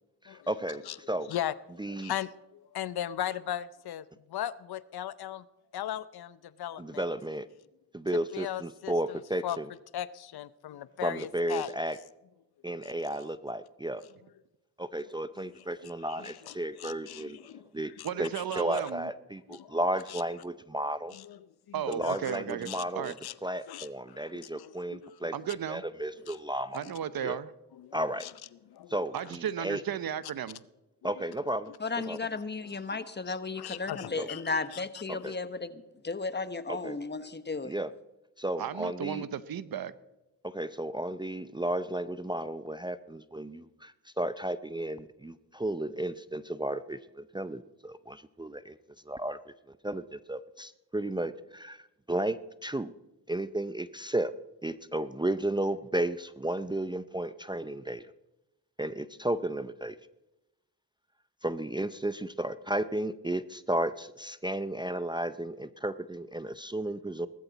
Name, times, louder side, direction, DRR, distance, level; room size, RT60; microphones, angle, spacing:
voice 1, 0.2-1.3 1.8-2.1 6.8-7.5 7.9-9.7 11.0-12.0 12.6-14.0 14.8-17.4 17.7-17.9 18.2-21.2 21.9-23.2 23.4-25.3 25.7-26.8 27.2-27.4 27.9-28.3 28.9-29.8 31.0-31.7 32.1-32.2 34.2-34.3 35.1-35.3 36.7-37.0 37.6-37.9 38.4-39.3 40.4-48.8 49.1-52.9 53.3-54.3 54.6-58.0 58.8-60.0 61.4-67.3, right 1 dB, 10° right, 0.5 m, -33 dB
voice 2, 2.0-2.3 2.7-4.0 4.3-5.4 5.7-7.0 8.3-8.9 9.4-9.6 9.9-11.7 16.2-16.5 16.8-17.6 18.0-18.1 19.6-19.8 21.1-21.4 22.0-22.2 22.7-23.3 23.7-25.1 26.3-26.4 27.8-28.3 28.7-28.9 31.0-31.1 33.6-34.4 34.7-34.8, left 11 dB, 70° left, 0.7 m, -37 dB
voice 3, 18.0-19.1 21.7-23.1 25.3-25.8 26.7-27.5 29.1-30.6 38.6-39.9, right 9 dB, 65° right, 0.9 m, -34 dB
voice 4, 31.8-37.7, left 4 dB, 25° left, 1.1 m, -34 dB
18.5 x 13.5 x 4.1 m
cardioid pair, 65°, 39 cm